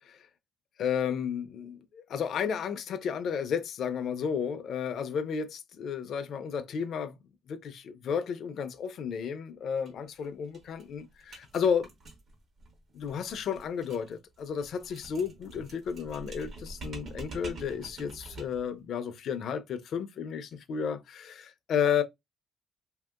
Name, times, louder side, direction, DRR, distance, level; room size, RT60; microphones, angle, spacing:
voice 1, 0.8-7.2 7.5-11.9 12.9-22.0, left 7 dB, 70° left, 0.4 m, -32 dB
sound 1, 9.8-9.9 10.2-10.3 10.5-18.7, right 2 dB, 60° right, 1.0 m, -46 dB
2.7 x 2.7 x 2.4 m
cardioid pair, 90°, 0 cm